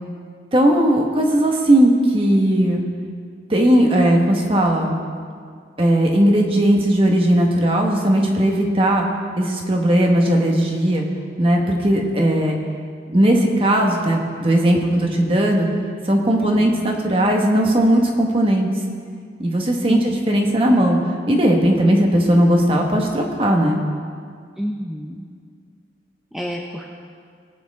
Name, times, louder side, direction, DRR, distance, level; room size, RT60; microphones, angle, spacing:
voice 1, 0.5-2.8 3.5-5.0 5.8-9.1 9.4-11.0 11.4-12.6 13.1-15.7 16.0-18.7 19.4-21.0 21.3-23.8, right 1 dB, 30° right, 1 dB, 1.5 m, -17 dB
voice 2, 16.4-16.8 19.9-20.2 24.6-25.3 26.3-26.9, equal, ahead, -1 dB, 0.6 m, -28 dB
21.0 x 9.1 x 3.7 m, 2.1 s
head